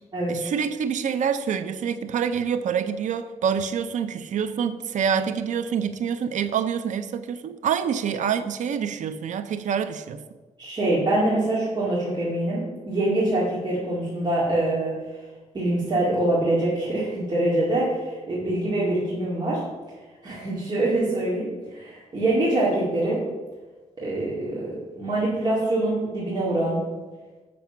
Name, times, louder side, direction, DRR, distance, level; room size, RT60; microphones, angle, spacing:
voice 1, 0.3-10.2, right 7 dB, 75° right, 11 dB, 0.6 m, -26 dB
voice 2, 10.6-15.2 15.5-19.6 20.2-23.2 24.0-26.8, right 1 dB, 35° right, -7 dB, 2.1 m, -24 dB
7.7 x 6.3 x 5.8 m, 1.3 s
wide cardioid pair, 130°, 13 cm